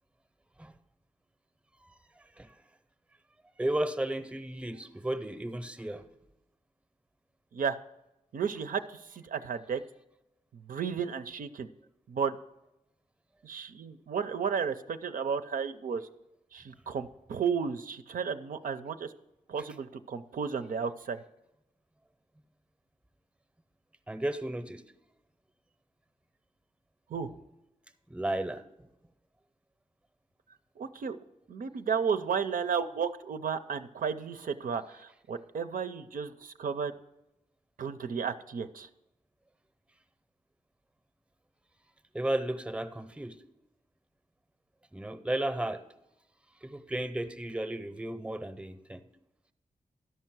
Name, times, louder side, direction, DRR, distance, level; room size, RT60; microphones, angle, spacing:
voice 1, 3.6-6.0 24.1-24.8 28.1-28.6 42.1-43.4 44.9-45.8 46.6-49.0, right 1 dB, 10° right, 10 dB, 0.6 m, -33 dB
voice 2, 8.3-9.8 10.5-11.7 12.1-12.4 13.4-16.1 16.5-19.1 19.5-21.2 27.1-27.3 30.8-31.2 31.5-36.9 37.8-38.9, right 6 dB, 85° right, 9 dB, 0.5 m, -33 dB
12.5 x 5.5 x 6.0 m, 0.91 s
wide cardioid pair, 105°, 14 cm